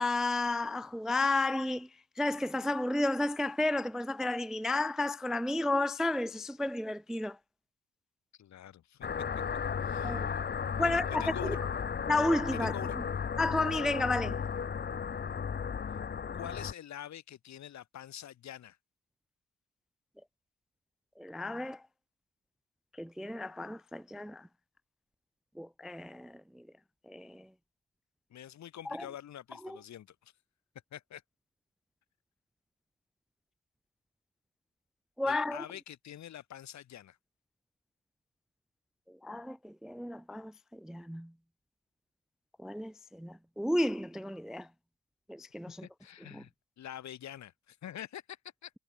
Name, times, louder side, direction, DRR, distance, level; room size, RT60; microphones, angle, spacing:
voice 1, 0.0-1.9 2.2-7.4 10.0-10.3 10.8-11.6 12.1-13.0 13.4-14.4 21.2-21.8 23.0-24.5 25.6-26.6 27.1-27.5 28.9-29.1 29.6-29.8 35.2-35.6 39.2-41.3 42.6-44.7 45.3-45.9 46.3-46.4, left 2 dB, ahead, 0.3 m, -32 dB
voice 2, 8.4-9.1 9.8-10.4 10.8-11.6 12.5-13.0 16.3-18.8 28.3-30.3 30.9-31.2 35.3-37.2 45.8-46.5 46.8-48.7, left 11 dB, 65° left, 2.4 m, -46 dB
sound 1, 9.0-16.7, left 6 dB, 35° left, 1.1 m, -35 dB
cardioid pair, 90°, 30 cm